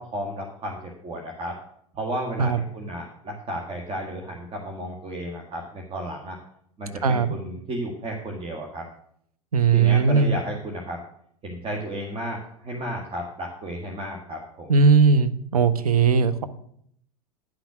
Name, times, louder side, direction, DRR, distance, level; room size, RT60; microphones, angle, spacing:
voice 1, 0.0-1.6 1.9-6.4 6.8-8.9 9.7-11.0 11.4-14.7, right 1 dB, 30° right, 1 dB, 1.8 m, -33 dB
voice 2, 7.0-7.3 9.5-10.3 14.7-16.5, right 5 dB, 85° right, 12 dB, 0.8 m, -18 dB
10.0 x 6.0 x 6.2 m, 0.68 s
hypercardioid pair, 90°, 19 cm